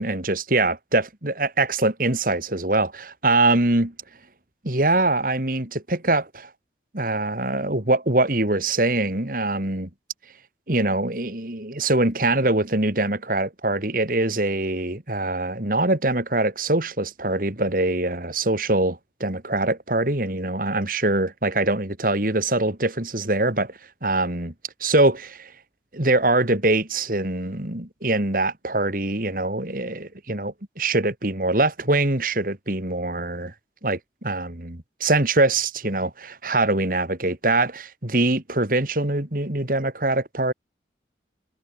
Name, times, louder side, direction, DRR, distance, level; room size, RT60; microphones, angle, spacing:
voice 1, 0.0-3.9 4.6-6.5 6.9-9.9 10.7-24.5 24.8-25.5 25.9-33.5 33.8-40.5, right 2 dB, 50° right, 2.6 m, -23 dB
head